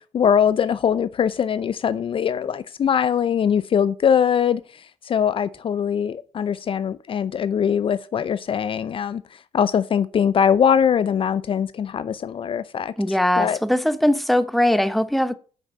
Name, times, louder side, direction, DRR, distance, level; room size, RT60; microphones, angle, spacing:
voice 1, 0.1-4.6 5.1-9.2 9.5-13.6, left 8 dB, 45° left, 0.5 m, -22 dB
voice 2, 13.0-15.3, left 1 dB, ahead, 0.8 m, -20 dB
8.3 x 5.8 x 5.3 m
hypercardioid pair, 60°, 13 cm